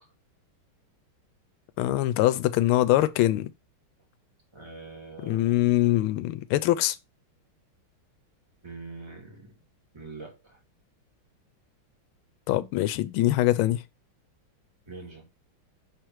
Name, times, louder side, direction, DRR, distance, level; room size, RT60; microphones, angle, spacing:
voice 1, 1.8-3.5 5.2-7.0 12.5-13.8, left 15 dB, 80° left, 1.4 m, -23 dB
voice 2, 4.5-5.6 8.6-9.7 9.9-10.6 14.9-15.3, right 3 dB, 15° right, 1.9 m, -43 dB
6.0 x 3.4 x 4.6 m
omnidirectional pair, 2.3 m